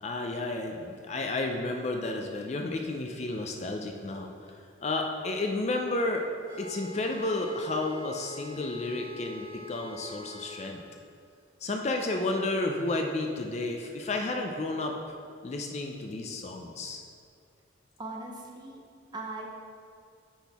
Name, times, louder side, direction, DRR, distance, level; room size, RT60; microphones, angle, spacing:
voice 1, 0.0-4.3 4.8-6.2 6.6-10.8 11.6-15.0 15.4-17.0, left 2 dB, 35° left, 3 dB, 0.4 m, -32 dB
sound 1, 6.4-10.7, left 2 dB, 85° right, 1.5 m, -45 dB
voice 2, 18.0-18.8 19.1-19.5, right 2 dB, 20° right, 0 dB, 0.6 m, -39 dB
6.1 x 5.9 x 3.4 m, 2.4 s
head